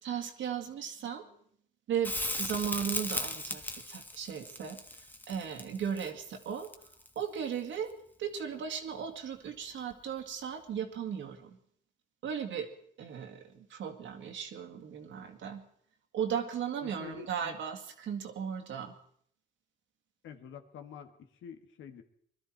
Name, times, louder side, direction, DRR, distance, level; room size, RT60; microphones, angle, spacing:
voice 1, 0.0-1.3 1.9-6.7 7.2-7.9 8.2-11.6 12.2-12.7 13.0-15.6 16.1-18.9, right 8 dB, 75° right, 4 dB, 2.1 m, -36 dB
Crackle, 2.0-7.2 9.9-10.0, left 1 dB, 10° left, 1.4 m, -37 dB
voice 2, 16.8-17.6 20.2-22.0, left 8 dB, 80° left, 6 dB, 1.6 m, -48 dB
22.0 x 12.5 x 4.6 m, 0.63 s
cardioid pair, 90°, 20 cm